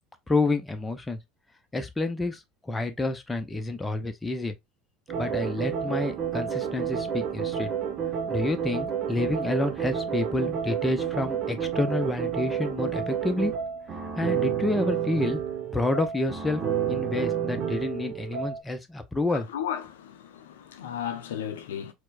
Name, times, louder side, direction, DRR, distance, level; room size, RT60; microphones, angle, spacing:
voice 1, 0.3-1.2 1.7-4.5 5.2-7.7 8.3-13.5 14.2-15.4 15.7-16.6 16.9-19.5, left 2 dB, 15° left, 0.6 m, -29 dB
sound 1, 5.1-18.6, right 8 dB, 40° right, 1.0 m, -30 dB
voice 2, 19.3-21.9, left 9 dB, 75° left, 0.5 m, -35 dB
4.3 x 2.1 x 2.4 m
hypercardioid pair, 75°, 0 cm